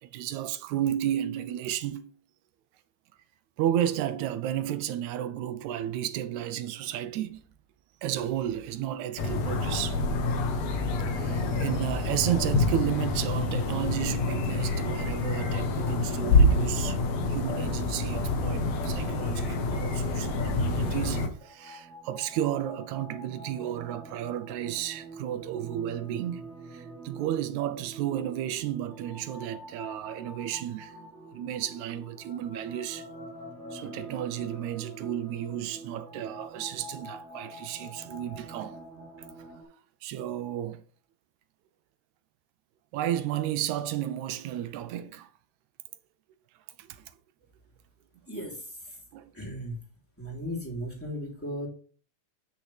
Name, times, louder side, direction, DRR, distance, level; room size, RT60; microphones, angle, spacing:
voice 1, 0.0-2.1 3.6-7.4 8.0-10.0 11.1-17.0 17.3-30.9 31.3-33.1 33.7-38.8 40.0-40.8 42.9-45.3 46.8-47.1 49.1-49.3, right 11 dB, 80° right, 2.1 m, -32 dB
sound 1, 9.2-21.3, left 2 dB, 70° left, 2.5 m, -27 dB
sound 2, 21.3-39.6, right 1 dB, 35° right, 1.1 m, -45 dB
voice 2, 48.3-48.9 49.3-49.8 50.2-51.7, equal, 5° left, 3.1 m, -36 dB
9.4 x 6.5 x 3.4 m
omnidirectional pair, 3.3 m